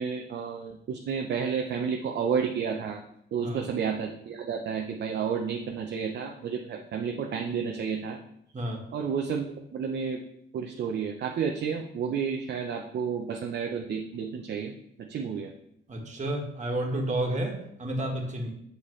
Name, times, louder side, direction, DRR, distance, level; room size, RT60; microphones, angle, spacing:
voice 1, 0.0-3.0 3.3-8.2 8.9-10.2 10.5-15.5, right 6 dB, 60° right, 2 dB, 0.7 m, -31 dB
voice 2, 15.9-18.5, right 1 dB, 35° right, 1 dB, 1.7 m, -31 dB
7.5 x 6.7 x 3.2 m, 0.73 s
cardioid pair, 90°, 20 cm